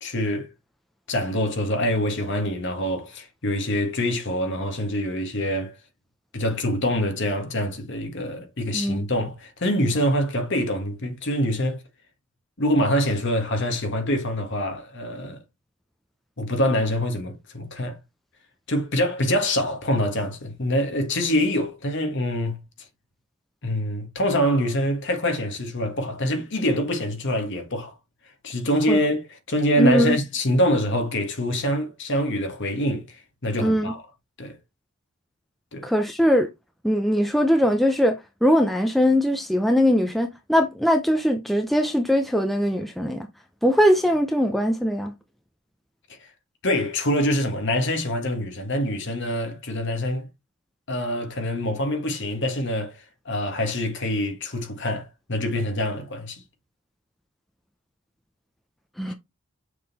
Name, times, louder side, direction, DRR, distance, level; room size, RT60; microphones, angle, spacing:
voice 1, 0.0-0.5 1.1-5.7 6.3-11.8 12.6-15.4 16.4-18.0 18.7-22.6 23.6-27.9 28.4-34.0 34.4-34.5 35.7-35.9 46.6-50.3 50.9-53.0 53.2-56.4, equal, 55° left, 1.4 m, -25 dB
voice 2, 8.7-9.0 28.9-29.0 29.8-30.2 33.6-33.9 35.8-36.5 36.8-43.3 43.6-45.1 59.0-59.1, equal, ahead, 0.6 m, -21 dB
6.6 x 3.7 x 4.0 m
head